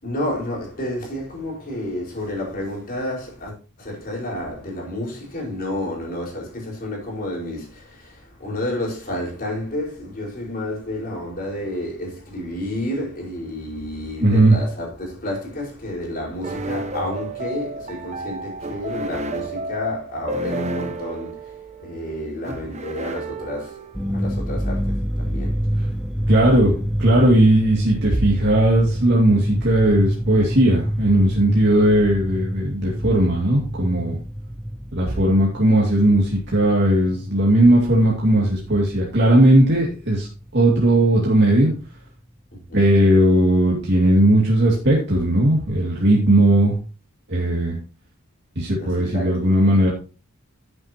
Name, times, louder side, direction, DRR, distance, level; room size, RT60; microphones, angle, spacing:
voice 1, 0.0-23.9 24.1-25.6 42.5-42.8 48.8-49.3, left 1 dB, 40° left, 4.9 m, -30 dB
voice 2, 14.2-14.6 26.3-34.2 34.9-40.3 40.5-41.7 42.7-46.7 47.3-47.8 48.6-49.9, right 1 dB, 50° right, 2.4 m, -17 dB
sound 1, 16.4-24.1, right 2 dB, 30° right, 0.9 m, -31 dB
sound 2, 23.9-39.0 39.3-40.4 40.8-40.9 41.2-41.9, equal, ahead, 0.5 m, -28 dB
11.5 x 8.8 x 2.9 m
head